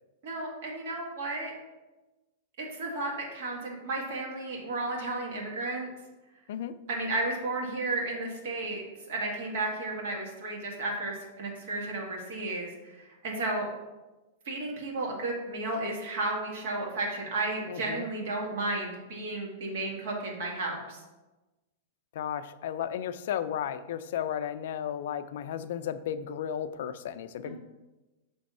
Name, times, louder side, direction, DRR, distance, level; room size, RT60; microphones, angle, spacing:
voice 1, 0.2-1.5 2.6-5.9 6.9-13.7 14.5-21.0 27.4-27.6, right 2 dB, 60° right, -1 dB, 1.8 m, -33 dB
voice 2, 17.7-18.1 22.1-27.6, left 9 dB, 60° left, 12 dB, 0.3 m, -34 dB
6.2 x 3.4 x 5.4 m, 1.1 s
supercardioid pair, 165°, 0 cm